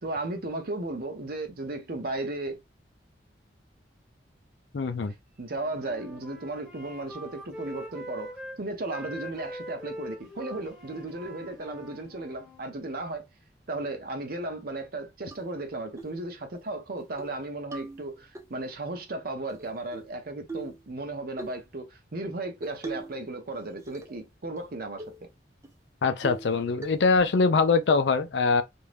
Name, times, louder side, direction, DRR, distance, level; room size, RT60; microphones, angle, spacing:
voice 1, 0.0-2.6 5.0-13.3 13.7-25.3, right 2 dB, 55° right, 0.7 m, -35 dB
voice 2, 4.7-5.1 26.0-28.6, left 4 dB, 70° left, 0.5 m, -23 dB
Wind instrument woodwind instrument, 5.5-8.6 8.9-12.7, equal, ahead, 1.0 m, -42 dB
sound 1, 15.3-15.4 16.0-16.2 16.5-16.6 17.0-17.3 17.7-18.5 19.5-20.1 20.5-20.8 21.4-21.6 22.6-23.2 23.5-24.2 24.6-24.7 25.0-25.2 25.6-25.7 26.2-26.5 26.8-27.3, right 2 dB, 15° right, 0.4 m, -40 dB
2.6 x 2.2 x 3.2 m
head